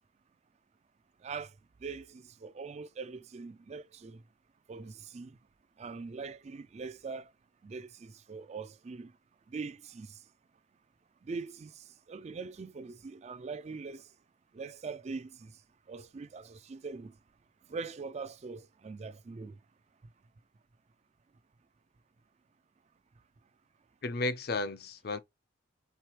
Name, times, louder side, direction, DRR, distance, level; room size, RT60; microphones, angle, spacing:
voice 1, 1.8-4.2 4.7-5.3 5.8-7.3 7.6-9.1 9.5-10.1 11.3-11.7 12.1-14.0 14.5-15.4 15.9-17.1 17.7-19.5, right 4 dB, 35° right, 0.3 m, -42 dB
voice 2, 24.0-25.2, left 3 dB, 50° left, 0.5 m, -33 dB
4.7 x 3.6 x 3.0 m
head